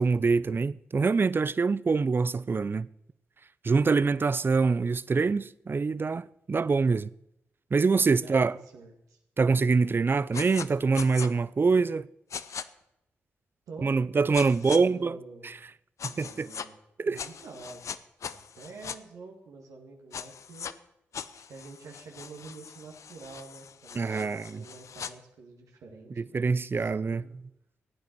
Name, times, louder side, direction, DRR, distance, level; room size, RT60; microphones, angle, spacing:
voice 1, 0.0-2.9 3.6-7.1 7.7-8.5 9.4-12.0 13.8-15.2 16.0-16.5 17.0-17.2 24.0-24.6 26.3-27.2, right 4 dB, 40° right, 0.5 m, -25 dB
voice 2, 8.2-9.2 13.7-13.9 14.2-15.5 16.0-16.8 17.0-17.8 18.3-20.7 21.3-26.5 26.8-27.4, right 3 dB, 80° right, 2.0 m, -47 dB
sound 1, 10.3-10.7 10.9-11.3 12.3-12.6 14.3-14.8 16.0-16.7 17.2-19.0 20.1-20.7 21.1-25.1, left 7 dB, 65° left, 0.6 m, -40 dB
15.5 x 9.2 x 4.5 m
supercardioid pair, 40°, 6 cm